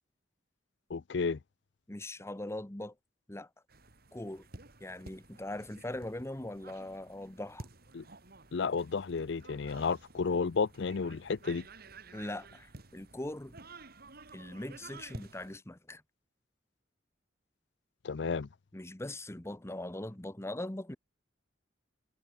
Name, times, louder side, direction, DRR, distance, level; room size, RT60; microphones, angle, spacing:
voice 1, 0.9-1.4 7.9-8.0 8.5-11.6 18.0-18.5, left 5 dB, 65° left, 0.5 m, -32 dB
voice 2, 1.9-2.9 3.3-3.5 4.1-4.4 4.8-7.6 12.1-13.6 14.3-16.0 18.7-21.0, left 1 dB, 15° left, 1.0 m, -41 dB
sound 1, 3.7-15.6, right 2 dB, 55° right, 3.5 m, -52 dB
head